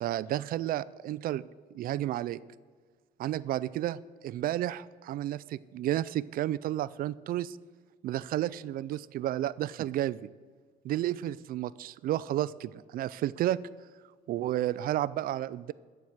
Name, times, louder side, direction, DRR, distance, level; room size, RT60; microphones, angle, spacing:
voice 1, 0.0-1.4 1.7-2.4 3.2-7.6 8.0-10.3 10.8-13.6 14.3-15.7, right 13 dB, 60° right, 19 dB, 0.4 m, -32 dB
14.0 x 4.7 x 7.8 m, 1.5 s
cardioid pair, 110°, 17 cm